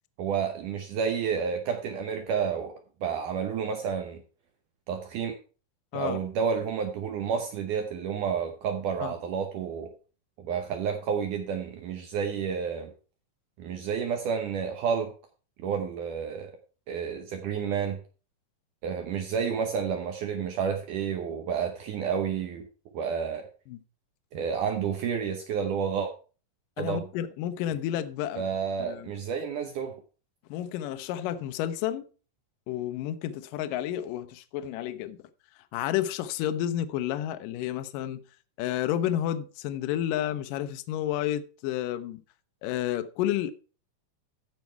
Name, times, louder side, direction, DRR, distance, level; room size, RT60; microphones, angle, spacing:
voice 1, 0.2-2.7 3.0-4.2 4.9-5.4 5.9-9.9 10.4-12.9 13.6-15.1 15.6-16.5 16.9-18.0 18.8-22.7 22.9-23.5 24.3-26.1 26.8-27.1 28.4-29.9, right 7 dB, 75° right, 1.9 m, -30 dB
voice 2, 26.8-28.4 28.8-29.1 30.5-32.0 32.7-35.2 35.7-38.2 38.6-42.2 42.6-43.5, left 11 dB, 85° left, 1.9 m, -31 dB
14.5 x 5.3 x 4.5 m
omnidirectional pair, 4.9 m